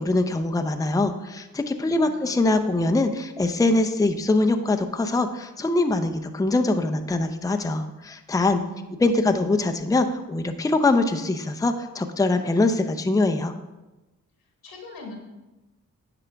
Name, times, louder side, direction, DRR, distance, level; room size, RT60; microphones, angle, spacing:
voice 1, 0.0-8.6 9.0-13.5, left 2 dB, 10° left, 6 dB, 0.5 m, -23 dB
voice 2, 1.9-2.3 8.6-9.3 14.6-15.2, left 1 dB, 85° left, 1 dB, 1.6 m, -42 dB
9.7 x 5.0 x 3.4 m, 1.1 s
cardioid pair, 50°, 35 cm